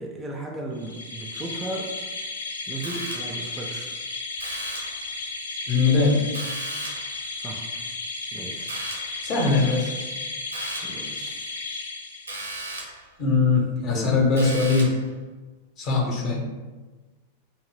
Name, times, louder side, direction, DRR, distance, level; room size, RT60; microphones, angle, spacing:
voice 1, 0.0-1.9 2.7-4.0 7.4-7.8 8.3-8.8 10.8-11.6 13.9-14.2, right 2 dB, 15° right, 0 dB, 0.4 m, -35 dB
sound 1, 0.8-12.6, left 3 dB, 70° left, 0.3 m, -34 dB
sound 2, 2.8-3.5 4.4-5.0 6.3-7.2 8.7-9.2 10.5-11.0 12.3-13.1 14.4-15.1, right 2 dB, 80° right, 0.5 m, -36 dB
voice 2, 5.7-6.3 9.2-9.9 13.2-14.9 15.8-16.4, left 4 dB, 35° left, -1 dB, 0.7 m, -21 dB
2.7 x 2.1 x 3.2 m, 1.3 s
figure-of-eight pair, 90°, 0 cm